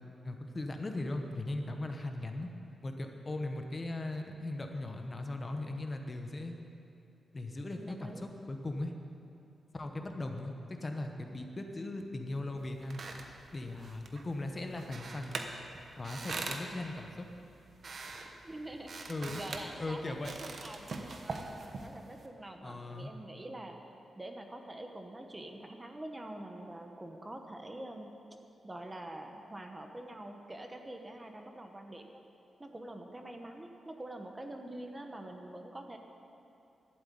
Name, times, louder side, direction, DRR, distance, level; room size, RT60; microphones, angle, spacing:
voice 1, 0.2-2.5 2.8-6.5 7.3-8.9 9.7-10.5 10.8-13.0 13.5-15.4 16.0-17.3 19.1-20.4 22.6-23.1, left 2 dB, 25° left, 4 dB, 0.9 m, -38 dB
voice 2, 7.7-8.2 18.4-23.8 24.2-28.1 28.6-32.2 32.6-36.0, right 1 dB, 15° right, 4 dB, 1.0 m, -45 dB
sound 1, 12.6-22.3, right 3 dB, 50° right, 1.0 m, -44 dB
12.0 x 7.9 x 9.4 m, 2.7 s
wide cardioid pair, 135°, 0 cm